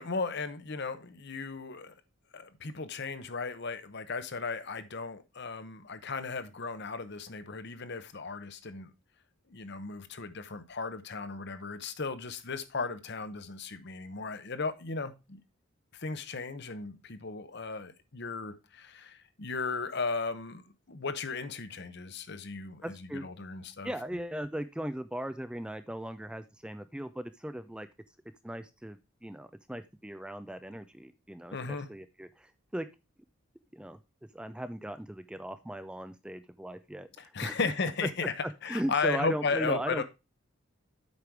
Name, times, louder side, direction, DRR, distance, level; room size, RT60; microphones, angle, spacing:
voice 1, 0.0-1.9 2.3-8.9 9.5-15.4 15.9-23.9 31.5-31.9 37.2-38.3 38.6-40.0, left 4 dB, 55° left, 0.9 m, -35 dB
voice 2, 22.8-23.3 23.8-27.9 28.4-32.9 33.7-34.0 34.3-37.6 38.4-40.0, right 1 dB, 5° right, 0.3 m, -38 dB
8.2 x 5.2 x 4.6 m
head